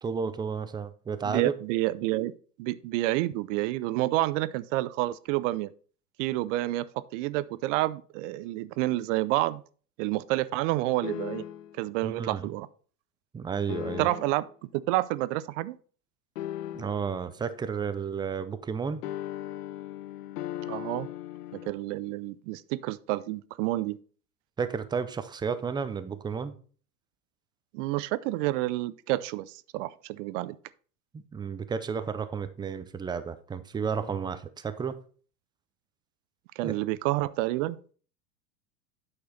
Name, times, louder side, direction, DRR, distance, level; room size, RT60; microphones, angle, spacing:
voice 1, 0.0-1.5 12.0-12.5 13.3-14.1 16.7-19.0 24.6-26.5 31.1-35.0 36.6-36.8, right 6 dB, 10° right, 0.4 m, -32 dB
voice 2, 1.2-2.3 2.6-5.7 6.2-9.6 10.0-11.5 11.8-12.7 14.0-15.8 20.7-21.1 21.5-24.0 27.7-30.6 36.6-37.8, right 17 dB, 50° right, 0.6 m, -29 dB
sound 1, 11.0-11.8 13.7-14.5 16.4-17.2 19.0-21.7, left 12 dB, 80° left, 0.6 m, -37 dB
8.7 x 6.1 x 3.9 m
hypercardioid pair, 100°, 47 cm